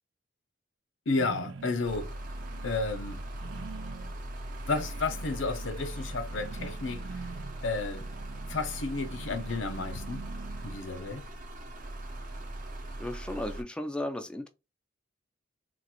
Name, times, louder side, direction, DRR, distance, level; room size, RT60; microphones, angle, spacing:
voice 1, 1.1-2.2 2.6-3.2 4.7-7.1 7.6-8.1 8.5-10.2 10.6-11.3, left 3 dB, 90° left, 0.7 m, -32 dB
sound 1, 1.2-4.1 4.4-11.0, right 5 dB, 75° right, 0.4 m, -46 dB
sound 2, 1.8-13.6, right 1 dB, 45° right, 0.8 m, -40 dB
voice 2, 13.0-14.5, left 1 dB, 5° left, 0.4 m, -35 dB
3.9 x 2.4 x 2.8 m
head